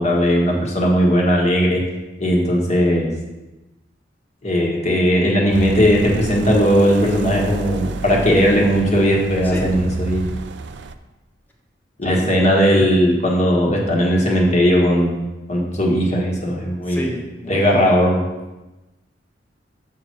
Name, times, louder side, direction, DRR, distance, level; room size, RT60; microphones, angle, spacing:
voice 1, 0.0-1.8 2.2-3.1 4.4-10.3 12.0-15.2 15.5-17.1 17.5-18.2, equal, 40° left, -1 dB, 1.6 m, -17 dB
sound 1, 5.5-10.9, right 4 dB, 65° right, 0.4 m, -30 dB
voice 2, 16.9-17.9, equal, 10° left, -1 dB, 1.3 m, -30 dB
7.1 x 6.0 x 4.5 m, 1.1 s
head